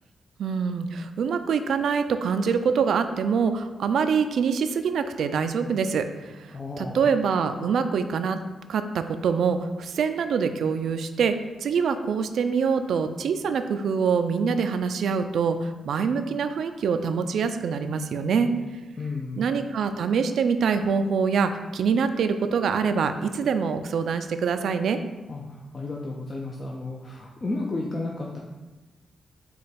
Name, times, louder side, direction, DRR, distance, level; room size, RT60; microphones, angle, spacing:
voice 1, 0.4-8.4 8.7-11.3 11.6-18.5 19.4-25.0, right 6 dB, 75° right, 9 dB, 0.3 m, -25 dB
voice 2, 6.5-7.0 19.0-19.5 25.3-28.4, left 2 dB, 35° left, -2 dB, 0.5 m, -33 dB
5.0 x 2.3 x 4.2 m, 1.2 s
cardioid pair, 85°, 0 cm